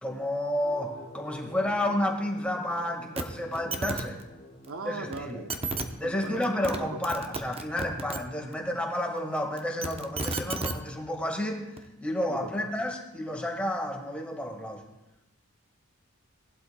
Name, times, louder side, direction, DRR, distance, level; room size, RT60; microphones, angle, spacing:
voice 1, 0.0-4.2 4.9-5.4 6.0-14.8, left 1 dB, 5° left, 1 dB, 1.7 m, -31 dB
sound 1, 0.6-6.4, left 1 dB, 45° left, 1.6 m, -50 dB
sound 2, 3.2-3.3 3.5-4.0 5.1-5.2 5.5-5.8 6.4-6.8 7.0-8.2 9.6-10.7 11.8-11.9, right 3 dB, 25° right, 0.8 m, -32 dB
voice 2, 4.7-5.6 6.0-6.8 12.3-12.7, right 3 dB, 65° right, 6 dB, 0.8 m, -39 dB
18.5 x 12.0 x 2.3 m, 0.94 s
head